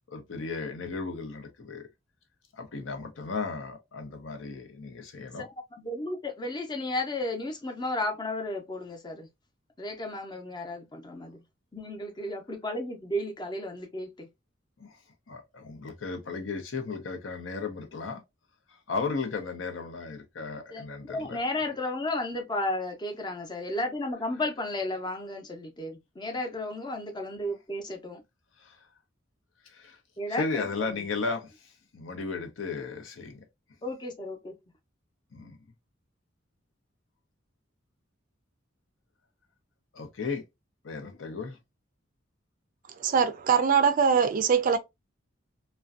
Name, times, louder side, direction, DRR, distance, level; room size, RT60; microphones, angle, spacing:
voice 1, 0.1-1.8 2.5-5.5 14.8-15.0 15.3-18.2 18.9-21.4 28.6-28.8 29.7-30.0 30.3-33.4 35.3-35.6 39.9-40.4 40.8-41.6, left 4 dB, 85° left, 0.6 m, -35 dB
voice 2, 5.4-9.3 9.8-11.4 11.7-14.3 20.7-28.2 30.2-31.1 33.8-34.6, left 1 dB, 25° left, 0.6 m, -33 dB
voice 3, 43.0-44.8, right 6 dB, 45° right, 0.3 m, -22 dB
2.4 x 2.1 x 2.4 m
head